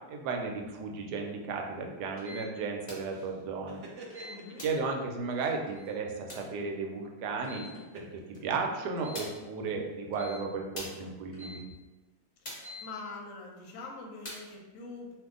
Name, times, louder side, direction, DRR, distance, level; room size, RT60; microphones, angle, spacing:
voice 1, 0.1-3.8 4.6-7.6 7.9-8.0 8.4-11.6, right 4 dB, 90° right, 2 dB, 1.2 m, -34 dB
sound 1, 2.2-2.5 4.1-4.4 5.7-6.0 7.4-7.8 9.0-9.3 10.1-10.4 11.3-11.6 12.5-12.9, left 3 dB, 15° right, 0.6 m, -47 dB
sound 2, 2.9-3.2 4.6-4.9 6.3-6.6 8.3-8.4 9.1-9.5 10.7-11.1 12.4-12.8 14.2-14.6, left 1 dB, 35° left, 0.7 m, -43 dB
sound 3, 3.1-4.8 5.3-5.6 7.5-9.2, right 2 dB, 70° right, 0.7 m, -49 dB
voice 2, 4.2-4.6 12.4-15.1, left 3 dB, 65° left, 0 dB, 0.9 m, -44 dB
2.7 x 2.4 x 3.6 m, 1.2 s
omnidirectional pair, 1.7 m